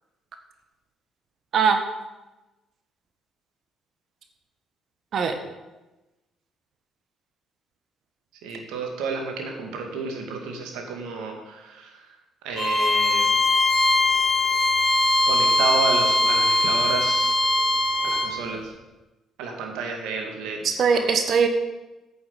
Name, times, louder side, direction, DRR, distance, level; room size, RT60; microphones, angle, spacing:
voice 1, 8.4-12.1 12.4-13.4 15.2-17.3 18.0-18.7 19.4-21.1, right 4 dB, 75° right, 2 dB, 2.1 m, -31 dB
Bowed string instrument, 12.6-18.3, left 2 dB, 35° left, 4.1 m, -21 dB
voice 2, 20.8-21.5, right 6 dB, 60° right, 6 dB, 1.3 m, -20 dB
9.0 x 7.8 x 6.9 m, 1.1 s
hypercardioid pair, 50°, 0 cm